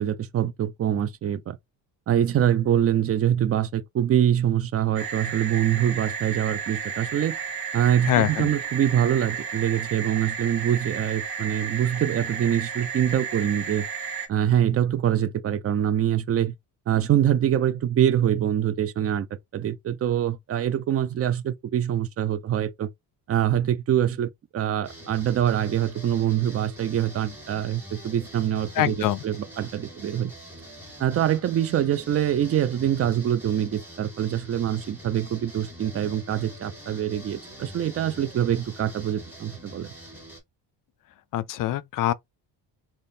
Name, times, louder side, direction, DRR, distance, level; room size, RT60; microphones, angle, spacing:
voice 1, 0.0-1.6 2.1-7.3 7.7-13.9 14.3-16.5 16.9-19.3 19.5-22.9 23.3-30.3 31.0-39.9, right 10 dB, 35° right, 0.4 m, -24 dB
sound 1, 5.0-14.3, right 6 dB, 55° right, 1.3 m, -33 dB
voice 2, 8.0-8.5 28.8-29.2 41.3-42.1, left 13 dB, 50° left, 0.4 m, -24 dB
sound 2, 24.8-40.4, equal, 5° right, 1.6 m, -44 dB
3.5 x 2.7 x 2.7 m
cardioid pair, 130°, 44 cm